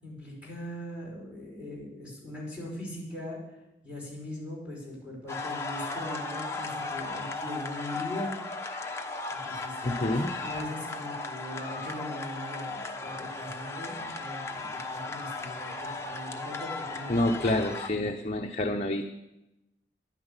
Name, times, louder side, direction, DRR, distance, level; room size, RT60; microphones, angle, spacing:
voice 1, 0.0-3.4 3.8-8.3 9.3-17.2, left 1 dB, 5° right, -4 dB, 5.2 m, -40 dB
sound 1, 5.3-17.9, left 3 dB, 15° left, 0.9 m, -36 dB
voice 2, 9.8-10.3 17.1-19.0, left 1 dB, 40° left, 3 dB, 0.7 m, -28 dB
11.0 x 10.0 x 8.9 m, 0.97 s
head